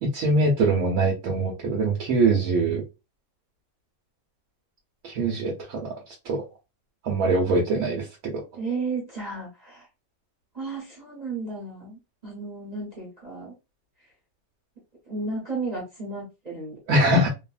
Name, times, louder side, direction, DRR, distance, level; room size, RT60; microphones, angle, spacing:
voice 1, 0.0-2.8 5.0-5.9 6.2-6.4 7.0-8.4 16.9-17.3, right 2 dB, 75° right, -2 dB, 1.2 m, -23 dB
voice 2, 8.5-9.9 10.5-13.5 15.1-16.8, right 3 dB, 35° right, -4 dB, 1.0 m, -33 dB
2.7 x 2.5 x 2.4 m, 0.26 s
omnidirectional pair, 1.5 m